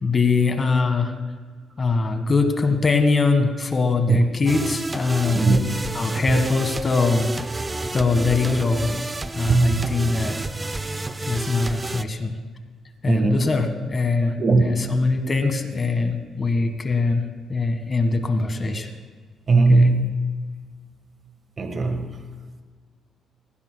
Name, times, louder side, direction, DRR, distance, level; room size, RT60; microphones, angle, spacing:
voice 1, 0.0-1.1 1.8-5.5 5.9-7.3 7.9-8.9 9.3-10.3 11.3-12.3 13.0-17.2 17.5-18.9 19.7-19.9, left 3 dB, 30° left, 7 dB, 1.6 m, -22 dB
sound 1, 4.5-12.0, right 2 dB, 20° right, 0.6 m, -30 dB
voice 2, 6.0-6.4 9.5-10.0 13.1-13.4 14.4-15.0 19.5-20.1 21.6-22.1, right 3 dB, 45° right, 6 dB, 1.4 m, -19 dB
19.0 x 15.5 x 2.3 m, 1.5 s
cardioid pair, 90°, 0 cm